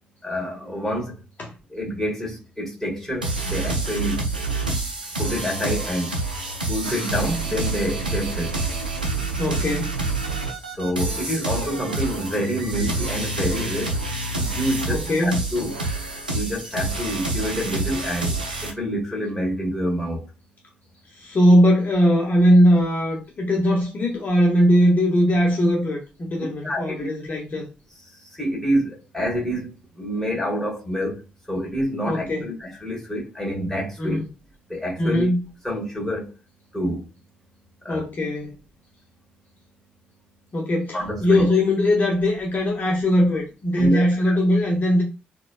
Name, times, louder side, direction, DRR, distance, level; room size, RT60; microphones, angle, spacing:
voice 1, 0.2-1.2 1.7-4.3 5.2-6.2 6.7-8.6 10.7-14.0 14.3-15.7 16.3-20.2 26.6-27.1 28.2-31.2 31.5-34.2 34.7-35.3 35.6-36.3 36.7-37.0 37.8-38.0 40.9-41.4 43.8-44.4, equal, 5° left, 1.7 m, -27 dB
sound 1, 3.2-18.7, right 3 dB, 90° right, 0.4 m, -27 dB
voice 2, 9.4-9.9 14.9-15.4 21.1-27.7 32.1-32.5 34.0-34.3 35.0-35.4 37.9-38.6 40.5-45.0, equal, 35° left, 0.8 m, -20 dB
4.0 x 2.2 x 2.3 m
figure-of-eight pair, 40°, 5 cm